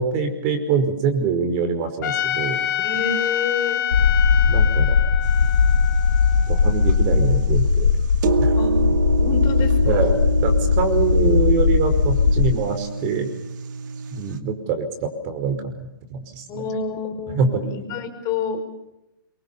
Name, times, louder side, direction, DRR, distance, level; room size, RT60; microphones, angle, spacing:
voice 1, 0.0-2.6 4.5-5.0 6.5-7.9 8.4-8.5 9.8-10.1 10.4-13.3 14.1-16.4 17.3-17.6, right 5 dB, 35° right, 8 dB, 5.1 m, -24 dB
Trumpet, 2.0-7.2, left 10 dB, 55° left, 3.7 m, -27 dB
voice 2, 2.8-3.8 8.6-8.8 9.2-10.1 16.5-18.6, left 5 dB, 30° left, 4 dB, 5.3 m, -28 dB
sound 1, 3.9-12.5, left 5 dB, 85° left, 2.4 m, -18 dB
sound 2, 5.2-14.4, right 5 dB, 55° right, 2.3 m, -28 dB
26.5 x 24.0 x 7.1 m, 0.90 s
hypercardioid pair, 125°, 12 cm